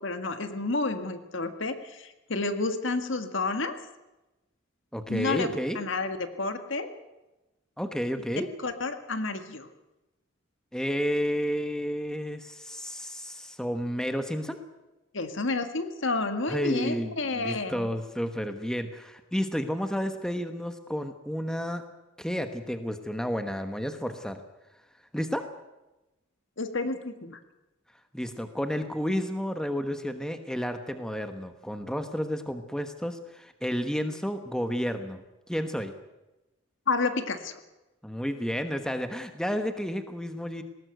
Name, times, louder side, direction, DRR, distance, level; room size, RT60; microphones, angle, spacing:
voice 1, 0.0-3.8 5.1-6.9 8.6-9.7 15.1-17.9 26.6-27.4 36.9-37.6, left 3 dB, 65° left, 8 dB, 1.8 m, -30 dB
voice 2, 4.9-5.8 7.8-8.5 10.7-14.6 16.5-21.8 22.2-24.4 25.1-25.4 28.1-35.9 38.0-40.6, equal, 5° left, 7 dB, 1.2 m, -31 dB
20.0 x 18.0 x 8.0 m, 1.0 s
head